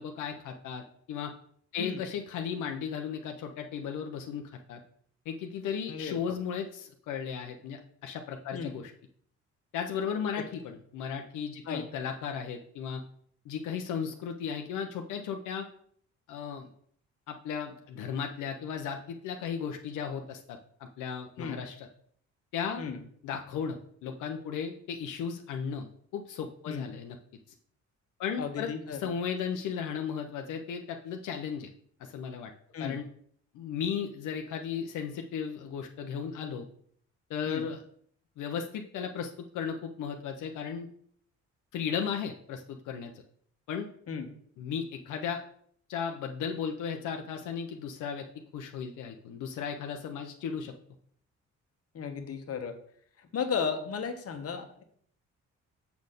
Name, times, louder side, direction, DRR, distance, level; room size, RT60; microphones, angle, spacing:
voice 1, 0.0-1.3 1.7-4.8 5.3-8.9 9.7-13.0 13.4-15.7 16.3-16.7 17.3-21.9 22.5-22.8 23.2-27.2 28.2-28.7 29.0-31.7 32.0-32.5 32.8-33.0 33.5-36.7 37.3-37.8 38.4-40.9 41.7-43.1 43.7-43.9 44.6-45.4 45.9-48.3 48.5-50.7, left 7 dB, 85° left, 3 dB, 0.8 m, -35 dB
voice 2, 5.9-6.3 8.5-8.7 10.4-10.5 11.7-11.8 21.4-21.6 22.8-23.0 26.7-26.9 28.4-29.1 32.7-33.0 37.5-37.6 44.1-44.3 51.9-52.8 53.2-54.8, left 6 dB, 50° left, 6 dB, 1.3 m, -35 dB
7.0 x 4.2 x 6.6 m, 0.62 s
cardioid pair, 90°, 30 cm